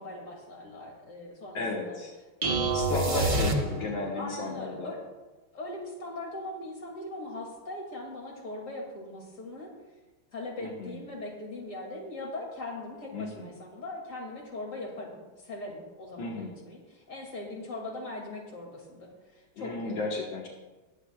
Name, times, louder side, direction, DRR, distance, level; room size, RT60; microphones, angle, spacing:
voice 1, 0.0-2.0 2.4-2.8 3.1-5.0 5.5-9.7 10.3-20.2, left 2 dB, 40° left, -1 dB, 2.8 m, -40 dB
voice 2, 1.5-2.1 2.7-4.9 10.6-11.0 13.1-13.5 16.2-16.6 19.6-20.5, left 3 dB, 75° left, -2 dB, 2.2 m, -34 dB
sound 1, 2.4-4.1, right 2 dB, 35° right, 0.5 m, -27 dB
21.0 x 8.3 x 2.4 m, 1.2 s
omnidirectional pair, 2.2 m